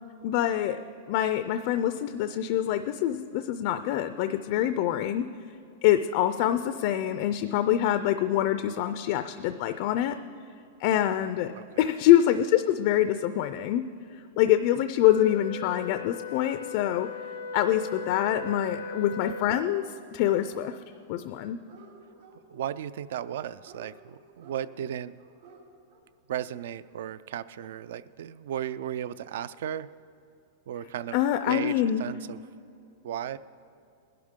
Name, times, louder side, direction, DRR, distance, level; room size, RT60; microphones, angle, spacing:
voice 1, 0.2-0.8 1.1-5.3 5.8-10.2 10.8-11.5 11.8-13.8 14.1-17.1 17.5-19.8 20.1-20.8 21.1-21.6 31.1-32.0, left 12 dB, 35° left, 10 dB, 0.4 m, -25 dB
Wind instrument woodwind instrument, 15.1-19.7, left 4 dB, 90° left, 0.7 m, -38 dB
Dog, 19.7-20.0 20.2-21.0 21.3-22.3 23.0-23.9 24.4-24.6 25.2-25.6 25.9-26.0, right 5 dB, 85° right, 3.0 m, -53 dB
voice 2, 22.5-25.2 26.3-29.9 30.7-31.2 31.5-31.7 32.0-32.4 33.0-33.4, right 10 dB, 60° right, 17 dB, 0.4 m, -35 dB
20.0 x 11.5 x 3.7 m, 2.6 s
supercardioid pair, 175°, 0 cm